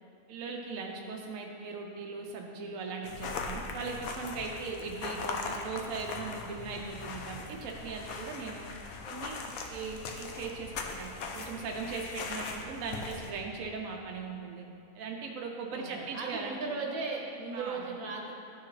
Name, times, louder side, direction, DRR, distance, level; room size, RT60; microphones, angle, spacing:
voice 1, 0.3-8.7 9.1-9.4 9.7-14.7 14.9-16.8 17.5-17.9, right 4 dB, 75° right, 1 dB, 1.0 m, -39 dB
sound 1, 3.0-13.3, left 4 dB, 90° left, 1.1 m, -40 dB
voice 2, 15.7-18.3, right 4 dB, 90° right, 0 dB, 1.4 m, -37 dB
12.5 x 4.6 x 3.2 m, 2.6 s
omnidirectional pair, 1.5 m